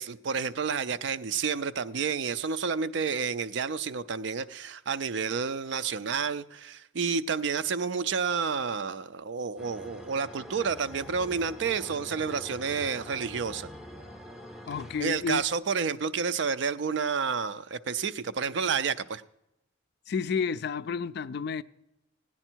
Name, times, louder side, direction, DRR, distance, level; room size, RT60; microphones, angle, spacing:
voice 1, 0.0-13.7 15.0-19.2, right 5 dB, 60° right, 0.4 m, -30 dB
sound 1, 9.6-15.6, equal, ahead, 0.6 m, -45 dB
voice 2, 14.7-15.4 20.1-21.6, left 5 dB, 55° left, 0.3 m, -31 dB
16.5 x 9.9 x 4.5 m
head